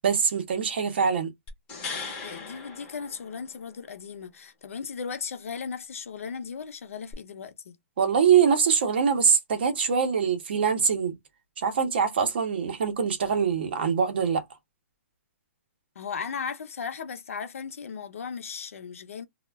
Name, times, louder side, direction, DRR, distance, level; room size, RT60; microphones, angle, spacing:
voice 1, 0.0-1.3 8.0-11.2 11.6-14.4, right 6 dB, 45° right, 0.6 m, -23 dB
sound 1, 1.5-3.7 7.1-7.2, left 4 dB, 10° left, 0.6 m, -38 dB
voice 2, 2.2-7.8 16.0-19.2, left 6 dB, 65° left, 0.6 m, -36 dB
2.3 x 2.1 x 3.3 m
hypercardioid pair, 180°, 8 cm